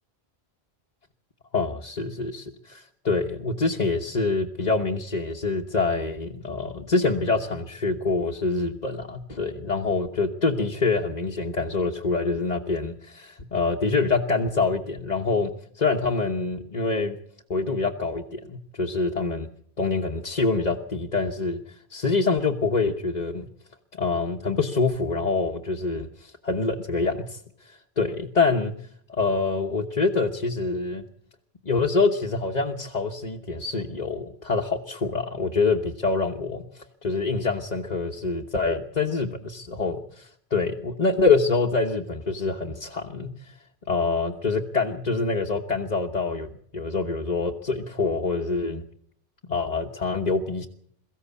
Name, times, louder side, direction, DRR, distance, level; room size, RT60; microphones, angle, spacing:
voice 1, 1.5-17.2 17.5-19.5 19.8-23.5 23.9-28.7 29.1-31.0 31.6-43.5 43.9-48.8 49.5-50.7, left 3 dB, 40° left, 1 dB, 1.3 m, -26 dB
22.5 x 15.0 x 8.3 m, 0.65 s
omnidirectional pair, 1.0 m